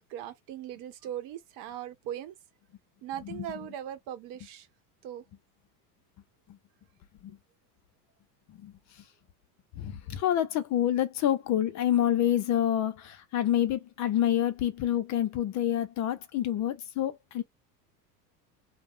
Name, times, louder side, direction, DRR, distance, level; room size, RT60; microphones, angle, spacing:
voice 1, 0.0-2.3 3.0-4.7 5.0-5.2, right 11 dB, 55° right, 0.9 m, -39 dB
voice 2, 8.5-9.0 9.7-17.4, left 11 dB, 40° left, 0.5 m, -28 dB
2.3 x 2.0 x 3.6 m
supercardioid pair, 100°, 46 cm